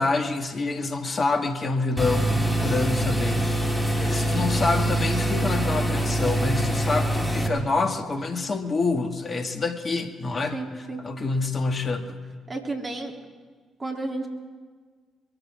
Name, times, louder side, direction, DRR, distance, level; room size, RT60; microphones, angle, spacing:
voice 1, 0.0-3.4 4.0-12.2, left 3 dB, 40° left, 6 dB, 1.9 m, -27 dB
sound 1, 2.0-7.5, right 1 dB, 5° left, 2.9 m, -24 dB
voice 2, 10.5-11.0 12.5-13.1 13.8-14.3, right 2 dB, 35° right, 1 dB, 3.3 m, -32 dB
23.0 x 14.5 x 3.8 m, 1.5 s
hypercardioid pair, 45°, 0 cm